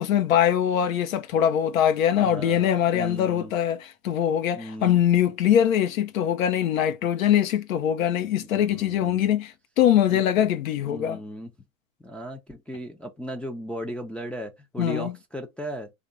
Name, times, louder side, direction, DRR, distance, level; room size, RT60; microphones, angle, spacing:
voice 1, 0.0-11.2 14.8-15.1, left 10 dB, 80° left, 0.9 m, -22 dB
voice 2, 2.2-3.5 4.6-5.0 8.5-9.3 10.1-10.2 10.8-11.5 12.0-15.9, equal, 5° left, 0.5 m, -36 dB
3.4 x 2.4 x 3.9 m
hypercardioid pair, 105°, 41 cm